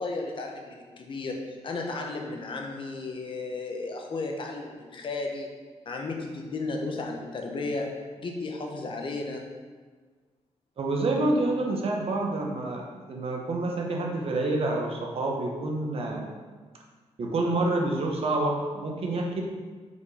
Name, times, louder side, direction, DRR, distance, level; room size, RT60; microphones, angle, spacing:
voice 1, 0.0-5.5 5.9-7.9 8.2-9.4, left 3 dB, 50° left, 1 dB, 0.9 m, -34 dB
voice 2, 10.8-16.3 17.2-19.4, right 2 dB, 55° right, 1 dB, 1.1 m, -28 dB
5.2 x 4.4 x 5.0 m, 1.4 s
wide cardioid pair, 125°, 11 cm